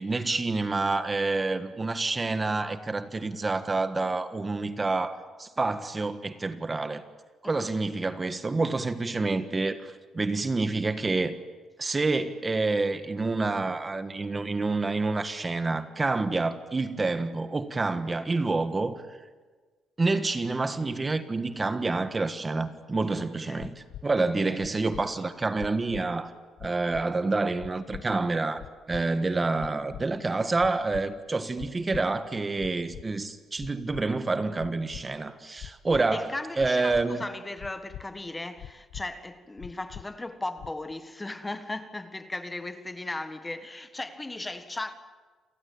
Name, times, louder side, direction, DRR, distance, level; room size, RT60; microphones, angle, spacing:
voice 1, 0.0-7.0 7.4-11.3 11.8-19.2 20.0-26.3 26.6-36.3 36.6-37.2, right 3 dB, 25° right, 1.5 m, -28 dB
voice 2, 23.2-23.8 24.2-24.6 36.1-44.9, left 2 dB, 15° left, 1.6 m, -37 dB
sound 1, 23.6-24.0 24.6-25.0 25.6-26.0 26.6-27.0 27.6-28.0 28.6-29.0 29.6-30.0 30.6-31.0 31.6-32.0 32.6-33.0 33.6-34.0 34.6-35.0 35.6-36.0 36.6-37.0 37.6-38.0 38.6-39.0 39.6-40.0 40.6-40.9, left 12 dB, 75° left, 0.7 m, -41 dB
28.5 x 19.0 x 8.9 m
cardioid pair, 90°, 0 cm